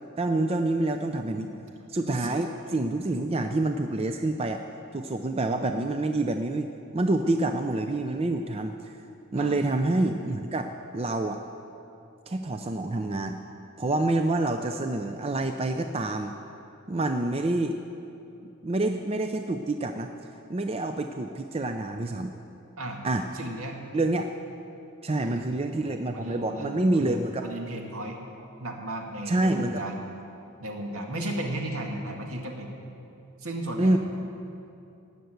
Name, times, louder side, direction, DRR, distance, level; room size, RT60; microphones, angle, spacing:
voice 1, 0.2-1.5 1.9-4.6 4.9-6.7 6.9-8.9 9.3-10.7 10.9-11.4 12.3-13.4 13.8-16.3 16.9-17.8 18.6-20.1 20.5-22.3 23.0-23.2 23.9-24.3 25.0-27.4 29.3-29.8 33.8-34.0, right 2 dB, 25° right, 6 dB, 0.4 m, -27 dB
voice 2, 23.3-23.8 25.1-25.4 25.7-28.2 28.6-30.0 30.6-32.7 33.4-34.0, right 1 dB, 70° right, 1 dB, 1.8 m, -35 dB
18.5 x 6.8 x 7.8 m, 2.9 s
head